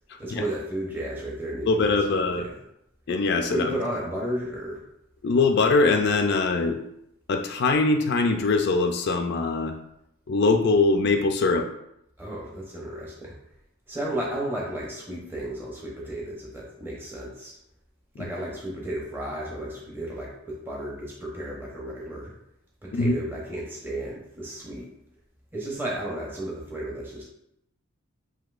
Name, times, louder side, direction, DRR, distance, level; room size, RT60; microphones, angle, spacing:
voice 1, 0.2-2.6 3.5-4.8 12.2-13.3 13.9-17.6 18.2-22.3 22.8-24.9 25.5-27.3, right 1 dB, 10° right, -4 dB, 0.7 m, -33 dB
voice 2, 1.7-2.5 3.1-3.7 5.2-6.8 7.3-9.7 10.3-11.7 22.9-23.1, left 3 dB, 50° left, 5 dB, 0.3 m, -22 dB
7.7 x 2.7 x 2.4 m, 0.80 s
head